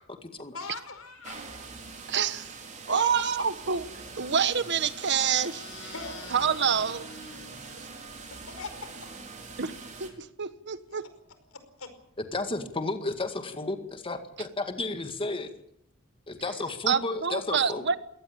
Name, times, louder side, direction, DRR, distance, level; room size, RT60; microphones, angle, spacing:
voice 1, 0.5-1.4 2.9-3.2 5.9-6.3 8.5-8.9 11.5-11.9, left 4 dB, 80° left, 9 dB, 4.9 m, -40 dB
sound 1, 1.2-10.1, right 4 dB, 35° right, 4.9 m, -44 dB
voice 2, 2.1-2.5 2.9-3.8 4.2-5.9 6.3-7.0 9.6-9.7 10.0-11.1 16.9-18.0, right 7 dB, 55° right, 13 dB, 1.3 m, -27 dB
sound 2, 3.8-8.3, left 4 dB, 55° left, 7.8 m, -48 dB
voice 3, 12.3-15.5 16.3-18.0, left 2 dB, 25° left, 7 dB, 2.0 m, -32 dB
22.5 x 18.0 x 8.7 m, 0.73 s
head